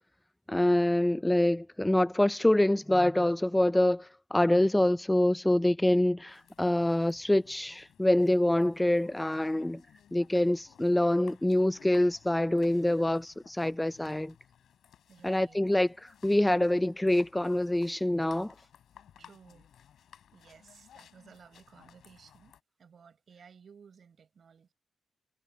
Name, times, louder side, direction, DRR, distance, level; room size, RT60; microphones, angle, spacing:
voice 1, 0.5-9.8 10.1-14.3 15.2-18.5, left 1 dB, 10° left, 0.3 m, -26 dB
sound 1, 6.3-22.6, left 9 dB, 85° left, 3.4 m, -59 dB
voice 2, 15.1-15.6 19.2-19.7 20.3-24.7, right 6 dB, 50° right, 5.8 m, -56 dB
wide cardioid pair, 125°, 0 cm